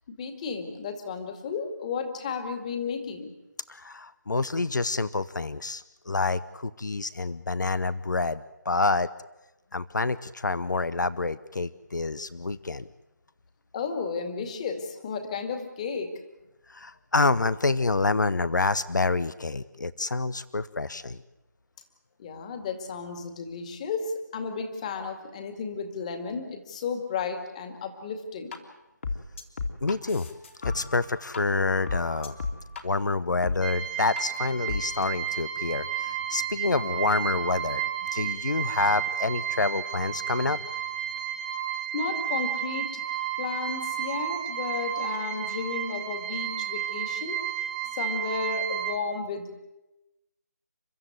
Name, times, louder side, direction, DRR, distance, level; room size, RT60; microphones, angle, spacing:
voice 1, 0.1-3.3 13.7-16.1 22.2-28.6 41.9-43.0 43.4-47.4 47.8-49.6, left 5 dB, 20° left, 7 dB, 2.2 m, -33 dB
voice 2, 3.7-9.1 9.7-12.9 16.7-21.2 29.8-30.3 30.6-32.4 32.8-40.6, left 3 dB, 80° left, 17 dB, 0.9 m, -27 dB
sound 1, 28.5-28.6 29.0-31.4 31.7-32.8 33.4-33.6 34.2-34.3 34.7-35.0, left 4 dB, 45° left, 2.8 m, -34 dB
sound 2, 33.6-49.0, right 10 dB, 30° right, 1.8 m, -32 dB
29.5 x 13.0 x 9.4 m, 1.0 s
figure-of-eight pair, 165°, 10 cm